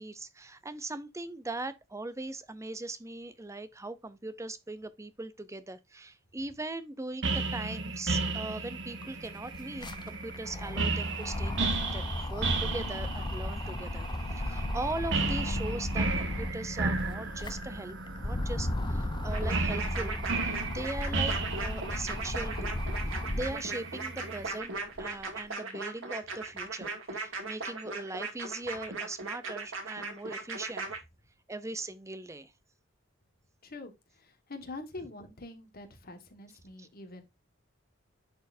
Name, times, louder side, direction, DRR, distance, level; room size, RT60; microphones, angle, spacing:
voice 1, 0.0-14.1 14.3-18.0 18.2-30.9 31.5-32.5, right 2 dB, 15° right, 0.6 m, -40 dB
sound 1, 7.2-24.5, right 3 dB, 65° right, 1.3 m, -34 dB
sound 2, 8.5-8.6 8.8-16.6 17.1-23.7 24.2-25.3, left 1 dB, 25° left, 0.6 m, -35 dB
sound 3, 19.3-31.0, right 3 dB, 90° right, 2.3 m, -38 dB
voice 2, 33.6-37.2, left 2 dB, 50° left, 1.6 m, -45 dB
10.5 x 4.4 x 2.6 m
head